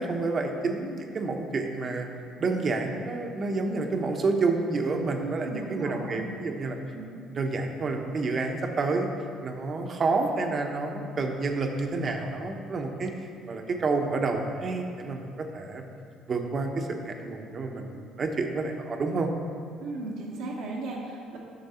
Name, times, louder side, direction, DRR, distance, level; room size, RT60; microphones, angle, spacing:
voice 1, 0.0-2.1 2.4-6.7 7.4-9.1 9.4-13.1 13.5-15.2 15.5-15.8 16.3-19.3, right 3 dB, 45° right, 4 dB, 1.0 m, -29 dB
voice 2, 5.2-6.4 7.0-7.1 19.8-21.4, right 2 dB, 80° right, -5 dB, 1.2 m, -36 dB
9.3 x 6.1 x 4.3 m, 2.3 s
supercardioid pair, 80°, 0 cm